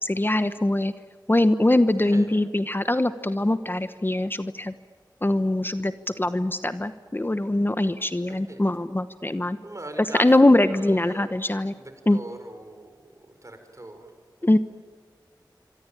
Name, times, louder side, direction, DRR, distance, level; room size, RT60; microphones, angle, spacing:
voice 1, 0.0-0.9 1.3-4.7 5.2-9.6 10.2-11.7 12.1-12.2 14.4-14.6, left 1 dB, 25° left, 11 dB, 1.1 m, -22 dB
voice 2, 8.3-8.6 9.6-10.3 10.6-14.1 14.4-14.5, right 2 dB, 40° right, 7 dB, 5.5 m, -41 dB
25.5 x 25.0 x 9.0 m, 1.5 s
wide cardioid pair, 55°, 8 cm